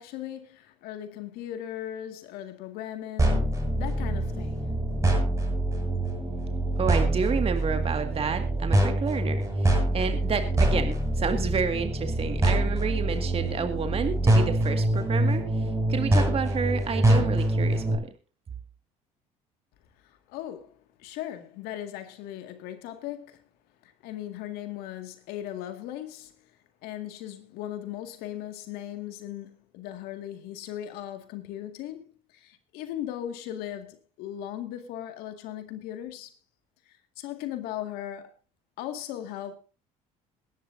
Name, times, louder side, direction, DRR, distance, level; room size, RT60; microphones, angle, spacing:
voice 1, 0.0-4.6 20.3-23.4 23.8-26.3 26.8-36.3 37.2-38.3 38.8-39.5, left 12 dB, 70° left, 2.0 m, -38 dB
sound 1, 3.2-17.9, right 1 dB, 20° right, 6.4 m, -25 dB
voice 2, 6.8-15.4 15.9-18.0, right 6 dB, 35° right, 1.9 m, -30 dB
21.5 x 11.0 x 2.7 m
supercardioid pair, 80°, 16 cm